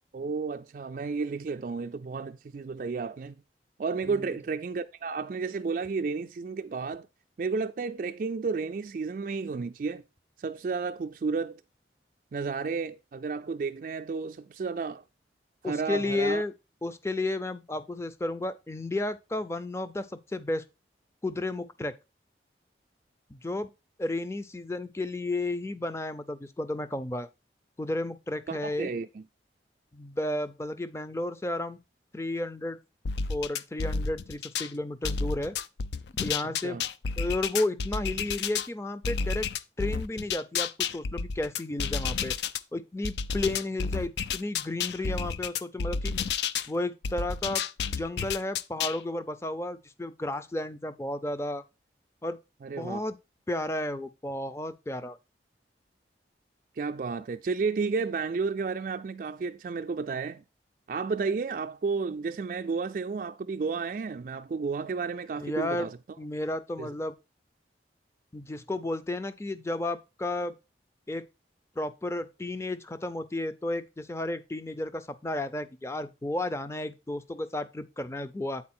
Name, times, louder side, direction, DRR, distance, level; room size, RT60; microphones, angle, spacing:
voice 1, 0.1-3.4 3.8-7.1 7.4-10.0 10.4-11.6 12.3-15.0 15.6-16.4 28.5-29.2 36.6-36.8 52.6-53.0 56.8-60.4 60.9-66.0 66.8-66.9, right 4 dB, 50° right, 0.3 m, -32 dB
voice 2, 4.0-4.4 15.6-16.5 16.8-20.6 21.2-21.9 23.3-23.7 24.0-27.3 27.8-28.9 29.9-31.8 32.1-32.8 33.3-35.6 36.2-36.8 37.2-39.5 39.8-42.3 42.7-46.2 46.7-47.6 48.0-51.6 52.2-52.4 52.8-53.2 53.5-55.2 65.4-65.9 66.2-67.1 68.3-70.5 71.1-71.2 71.8-78.6, left 2 dB, 15° left, 0.5 m, -32 dB
sound 1, 33.1-34.7 35.0-38.7 39.0-42.6 43.0-46.7 47.0-49.0, left 5 dB, 70° left, 0.4 m, -31 dB
8.5 x 4.4 x 4.3 m
head